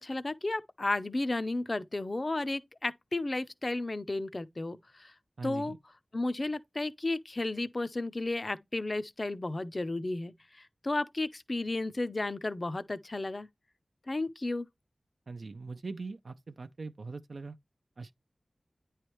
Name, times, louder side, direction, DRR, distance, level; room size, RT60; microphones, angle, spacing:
voice 1, 0.0-5.1 5.4-5.7 6.1-13.5 14.1-14.7, left 2 dB, 40° left, 0.6 m, -33 dB
voice 2, 5.4-5.8 15.3-17.6 18.0-18.1, right 3 dB, 70° right, 0.5 m, -41 dB
9.7 x 3.2 x 3.0 m
wide cardioid pair, 60°, 0 cm